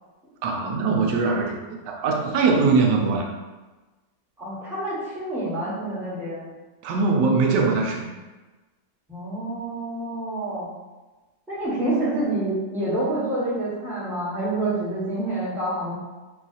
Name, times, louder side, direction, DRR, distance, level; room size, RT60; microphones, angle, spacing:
voice 1, 0.4-3.3 6.8-8.1, right 4 dB, 85° right, 1 dB, 1.2 m, -22 dB
voice 2, 4.4-6.6 9.1-10.7 11.5-15.9, right 1 dB, ahead, -10 dB, 1.0 m, -27 dB
3.2 x 2.4 x 4.0 m, 1.2 s
omnidirectional pair, 1.8 m